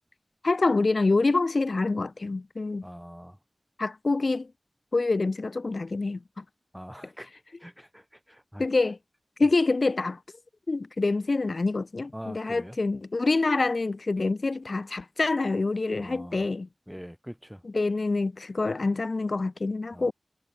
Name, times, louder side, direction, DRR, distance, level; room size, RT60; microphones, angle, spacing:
voice 1, 0.4-2.8 3.8-4.5 4.9-6.4 8.6-9.0 9.4-10.2 10.7-16.7 17.6-20.1, left 3 dB, 70° left, 4.9 m, -26 dB
voice 2, 2.8-3.4 6.7-7.3 7.6-8.6 12.1-12.7 16.0-16.4 16.9-17.6 19.9-20.1, equal, ahead, 5.4 m, -43 dB
wide cardioid pair, 45°, 0 cm